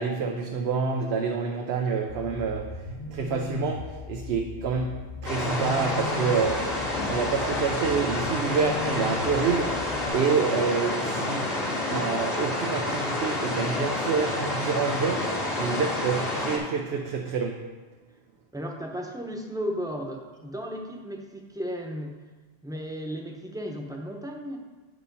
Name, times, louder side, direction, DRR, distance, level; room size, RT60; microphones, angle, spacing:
voice 1, 0.0-2.8 3.1-6.7 7.1-11.5 11.9-17.6, right 5 dB, 85° right, 2 dB, 0.9 m, -28 dB
sound 1, 2.1-10.1, left 4 dB, 55° left, 0.8 m, -38 dB
sound 2, 5.2-16.6, left 2 dB, 70° left, 2.1 m, -29 dB
voice 2, 18.5-22.1 22.6-24.6, equal, 5° right, 1 dB, 0.8 m, -34 dB
8.2 x 5.0 x 5.3 m, 1.3 s
omnidirectional pair, 1.0 m